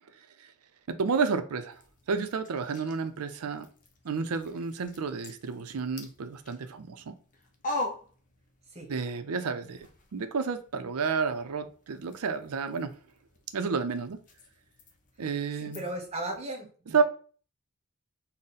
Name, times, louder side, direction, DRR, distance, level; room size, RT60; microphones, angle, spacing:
voice 1, 0.9-1.8 2.1-3.7 4.0-7.2 8.9-9.9 10.1-12.9 13.5-14.2 15.2-15.8 16.9-17.0, right 5 dB, 80° right, 9 dB, 0.5 m, -30 dB
sound 1, 1.7-8.9 9.2-16.4, left 2 dB, 35° left, 0.6 m, -44 dB
voice 2, 15.6-17.0, right 1 dB, 30° right, 2 dB, 0.9 m, -36 dB
3.8 x 2.1 x 4.0 m, 0.41 s
head